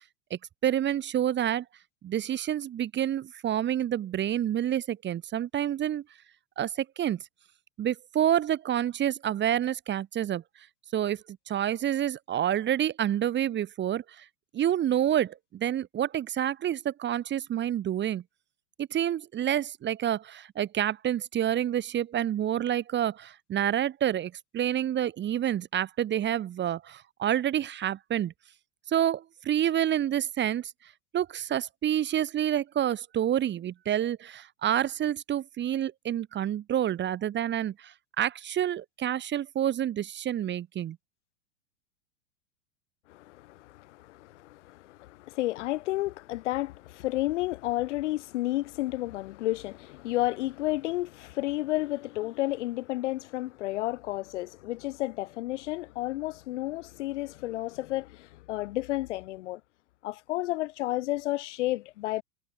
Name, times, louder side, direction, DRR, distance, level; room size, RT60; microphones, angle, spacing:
voice 1, 0.3-1.6 2.0-6.0 6.6-7.2 7.8-10.4 10.9-14.2 14.5-18.2 18.8-28.3 28.9-30.7 31.1-41.0, right 11 dB, 25° right, 2.3 m, -28 dB
voice 2, 43.1-59.6 60.0-62.2, left 17 dB, 60° left, 5.0 m, -31 dB
hypercardioid pair, 100°, 40 cm